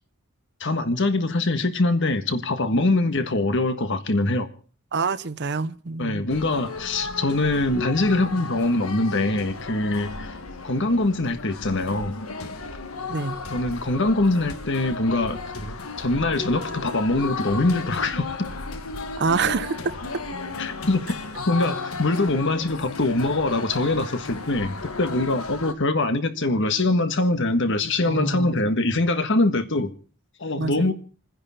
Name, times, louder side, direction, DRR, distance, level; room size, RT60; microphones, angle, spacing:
voice 1, 0.6-4.5 6.0-10.4 10.6-12.1 13.5-18.5 20.6-21.0 21.5-29.9 30.4-30.9, left 2 dB, 55° left, 1.5 m, -23 dB
voice 2, 4.9-6.2 13.1-13.4 19.2-19.8 28.0-28.6 30.6-30.9, right 4 dB, 50° right, 0.7 m, -26 dB
sound 1, 6.3-25.7, left 3 dB, 70° left, 1.4 m, -34 dB
29.0 x 10.0 x 4.3 m
head